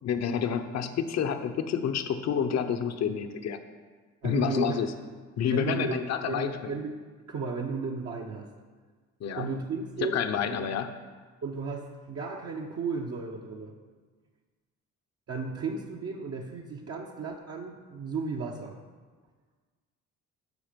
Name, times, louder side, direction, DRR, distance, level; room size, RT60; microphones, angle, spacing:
voice 1, 0.0-3.6 4.2-4.9 5.4-6.7 9.2-9.5 10.0-10.9, left 7 dB, 60° left, 7 dB, 0.8 m, -29 dB
voice 2, 4.2-4.9 5.5-6.9 7.3-8.5 9.4-10.2 10.6-10.7 11.4-13.8 15.3-18.8, right 4 dB, 55° right, -1 dB, 0.9 m, -34 dB
13.5 x 5.0 x 5.1 m, 1.5 s
cardioid pair, 90°, 30 cm